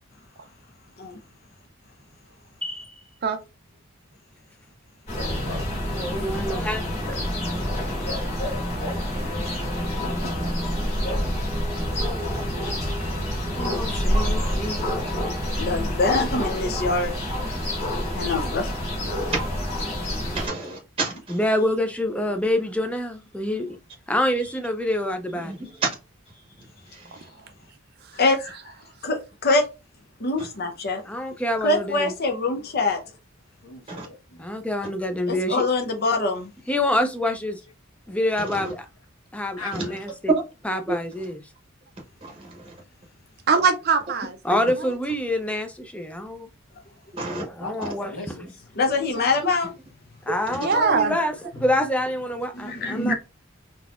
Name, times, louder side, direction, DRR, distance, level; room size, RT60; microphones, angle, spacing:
voice 1, 2.6-2.9 5.9-6.8 7.1-7.2 7.7-8.2 13.5-14.9 15.6-15.9 21.3-23.7 24.1-25.6 31.0-32.1 34.4-35.6 36.7-37.6 38.1-38.9 39.3-40.3 40.6-41.4 44.4-46.5 47.4-48.2 50.3-53.1, left 1 dB, 5° left, 0.4 m, -27 dB
sound 1, 5.1-20.5, equal, 30° left, 1.8 m, -27 dB
voice 2, 9.7-10.6 33.6-34.7 39.6-39.9 47.6-48.5, left 2 dB, 85° left, 1.1 m, -39 dB
voice 3, 15.6-17.1 18.1-18.9 28.1-28.6 29.0-29.6 30.2-31.0 31.6-33.0 35.3-36.5 48.8-49.7 52.6-53.1, left 3 dB, 50° left, 0.6 m, -24 dB
voice 4, 20.3-21.4 25.4-25.8 26.9-27.1 30.4-30.5 33.9-34.1 38.4-38.7 39.7-39.9 40.3-40.4 40.9-41.0 42.2-42.7 47.1-47.4, right 3 dB, 25° right, 0.9 m, -29 dB
voice 5, 43.5-44.4 44.8-44.9 50.5-51.2, right 5 dB, 50° right, 0.5 m, -21 dB
3.8 x 2.8 x 2.4 m
head